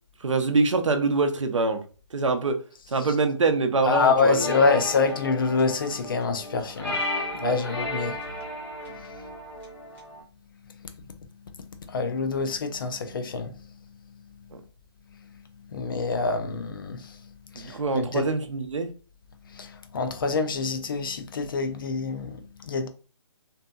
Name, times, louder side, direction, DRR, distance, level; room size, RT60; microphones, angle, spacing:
voice 1, 0.2-1.8 2.1-2.6 2.9-4.5 7.4-7.6 17.6-18.9, right 3 dB, 85° right, 0.6 m, -24 dB
voice 2, 3.9-7.0 7.3-8.2 11.9-13.5 15.7-17.1 17.6-18.2 19.6-19.7 19.9-22.4 22.7-22.9, left 4 dB, 45° left, 0.4 m, -26 dB
sound 1, 4.2-10.2, left 1 dB, 10° left, 0.7 m, -34 dB
2.7 x 2.5 x 2.2 m
figure-of-eight pair, 150°, 16 cm